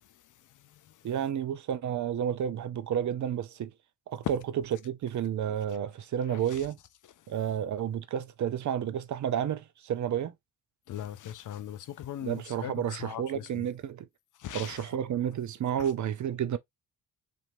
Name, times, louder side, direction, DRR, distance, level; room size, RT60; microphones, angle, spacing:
voice 1, 0.5-1.0 6.3-6.6 10.9-13.7 14.4-15.0 15.8-15.9, left 11 dB, 50° left, 0.5 m, -41 dB
voice 2, 1.0-3.7 4.1-4.4 4.8-6.8 7.3-10.3 12.2-14.1 14.5-16.6, right 9 dB, 45° right, 0.6 m, -31 dB
2.9 x 2.6 x 2.5 m
hypercardioid pair, 45°, 42 cm